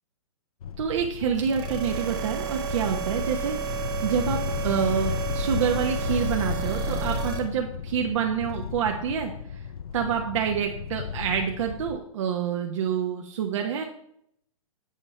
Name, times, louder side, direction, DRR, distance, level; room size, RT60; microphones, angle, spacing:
sound 1, 0.6-12.0, left 8 dB, 90° left, 0.5 m, -34 dB
voice 1, 0.8-3.6 4.0-9.3 9.9-13.9, right 7 dB, 60° right, 2 dB, 1.1 m, -27 dB
sound 2, 1.4-7.4, right 6 dB, 20° right, 0.9 m, -31 dB
8.9 x 5.0 x 4.3 m, 0.70 s
hypercardioid pair, 145°, 18 cm